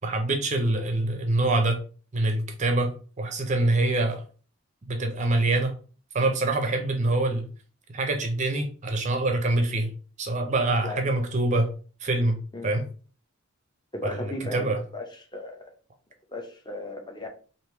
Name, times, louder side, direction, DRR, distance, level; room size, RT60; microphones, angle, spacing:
voice 1, 0.0-1.8 2.1-4.2 4.9-5.7 6.1-7.5 7.9-9.9 10.2-11.7 12.0-12.8 14.0-14.8, right 2 dB, 35° right, 0.5 m, -25 dB
voice 2, 13.9-15.6 16.3-17.3, left 1 dB, 20° left, 0.7 m, -36 dB
3.3 x 2.6 x 4.3 m
head